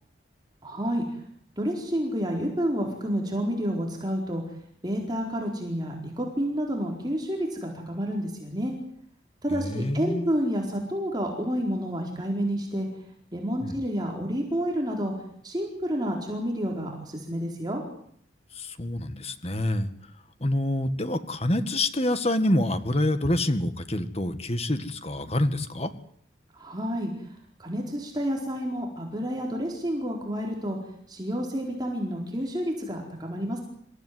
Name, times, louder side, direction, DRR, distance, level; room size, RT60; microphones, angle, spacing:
voice 1, 0.6-1.0 1.6-4.4 4.8-8.7 9.4-12.9 13.3-15.1 15.4-17.8 26.5-27.1 27.6-30.8 31.1-33.6, equal, 20° right, 0 dB, 4.4 m, -29 dB
voice 2, 9.5-10.3 13.6-13.8 18.5-19.9 20.4-25.9, left 1 dB, 35° left, 10 dB, 1.9 m, -27 dB
27.0 x 15.5 x 9.6 m, 0.65 s
head